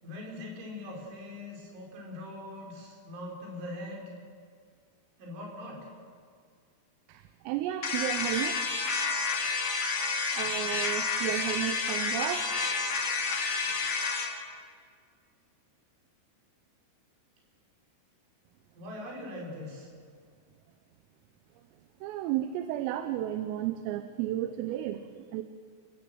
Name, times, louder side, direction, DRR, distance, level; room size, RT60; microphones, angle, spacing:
voice 1, 0.0-4.1 5.2-5.9 18.7-19.9, left 1 dB, 65° right, -1 dB, 6.5 m, -41 dB
voice 2, 7.1-8.7 10.4-12.6 22.0-25.4, right 13 dB, 85° right, 9 dB, 3.5 m, -33 dB
sound 1, 7.8-14.3, left 4 dB, 45° left, 2.3 m, -30 dB
29.0 x 14.5 x 7.9 m, 2.1 s
omnidirectional pair, 6.0 m